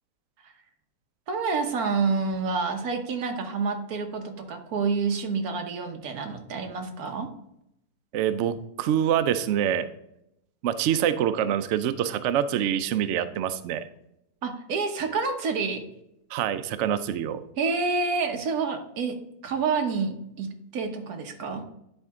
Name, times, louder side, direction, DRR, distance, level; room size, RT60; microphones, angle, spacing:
voice 1, 1.3-7.3 14.4-15.8 17.6-19.2 19.4-21.6, right 4 dB, 65° right, 4 dB, 1.4 m, -28 dB
voice 2, 8.1-9.9 10.6-13.9 16.3-17.4, right 10 dB, 85° right, 12 dB, 0.6 m, -25 dB
10.5 x 4.4 x 3.6 m, 0.81 s
omnidirectional pair, 1.8 m